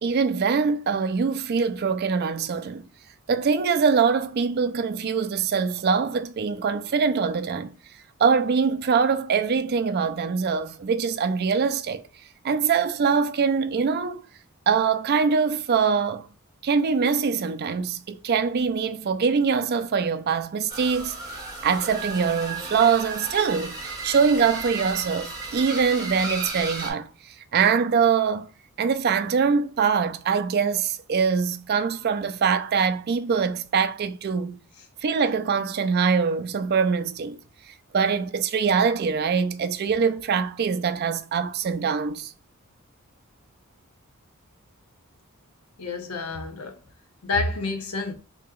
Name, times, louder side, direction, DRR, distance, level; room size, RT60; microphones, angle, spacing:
voice 1, 0.0-2.8 3.3-7.7 8.2-12.0 12.4-14.2 14.7-16.3 16.6-21.1 21.6-23.7 24.0-27.1 27.5-28.5 28.8-34.6 35.0-37.4 37.9-42.3, right 5 dB, 45° right, 0.3 m, -23 dB
sound 1, 20.7-26.9, right 3 dB, 20° right, 0.9 m, -34 dB
voice 2, 45.8-46.8 47.2-48.1, left 3 dB, 85° left, 0.7 m, -28 dB
2.8 x 2.8 x 3.7 m
head